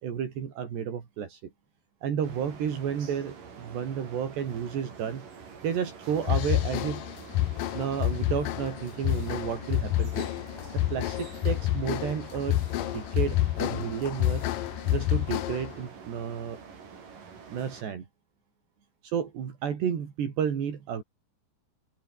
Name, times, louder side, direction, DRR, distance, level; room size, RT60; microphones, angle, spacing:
voice 1, 0.0-1.5 2.0-5.3 5.6-7.0 7.7-10.3 10.7-12.6 12.9-14.5 14.9-16.6 17.5-18.1 19.0-21.0, right 8 dB, 70° right, 5.6 m, -32 dB
sound 1, 2.2-17.8, right 6 dB, 50° right, 5.7 m, -47 dB
sound 2, 6.2-15.8, left 15 dB, 75° left, 2.1 m, -29 dB
omnidirectional pair, 5.1 m